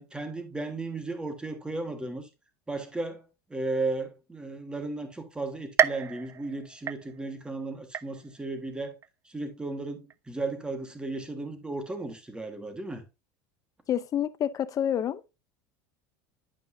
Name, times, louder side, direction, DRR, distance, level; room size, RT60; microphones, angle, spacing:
voice 1, 0.0-2.3 2.7-9.0 9.2-13.0, right 2 dB, 10° right, 1.4 m, -35 dB
sound 1, 5.8-7.5 7.9-8.5 9.0-9.1 10.1-10.2, right 8 dB, 25° right, 0.3 m, -29 dB
voice 2, 13.9-15.3, left 10 dB, 35° left, 0.5 m, -28 dB
9.8 x 5.3 x 2.6 m
supercardioid pair, 120°, 10 cm